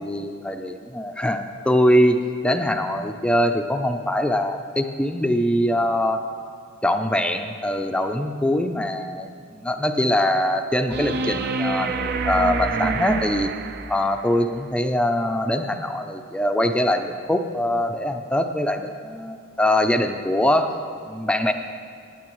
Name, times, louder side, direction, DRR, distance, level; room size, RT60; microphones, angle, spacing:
voice 1, 0.0-2.2 2.4-6.2 6.8-13.5 13.9-20.7 21.1-21.5, left 1 dB, 5° left, 6 dB, 0.4 m, -23 dB
sound 1, 10.9-14.3 16.9-17.0, right 4 dB, 50° right, 0.5 m, -27 dB
19.0 x 9.2 x 3.1 m, 2.3 s
head